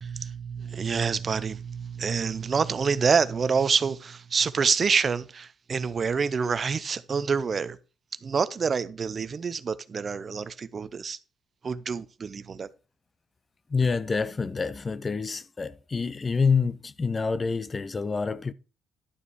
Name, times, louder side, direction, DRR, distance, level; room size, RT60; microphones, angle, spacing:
voice 1, 0.0-7.8 8.2-11.2 11.6-12.7, right 5 dB, 40° right, 0.6 m, -27 dB
voice 2, 13.7-18.5, left 5 dB, 30° left, 0.5 m, -27 dB
11.5 x 5.1 x 4.8 m
cardioid pair, 90°, 0 cm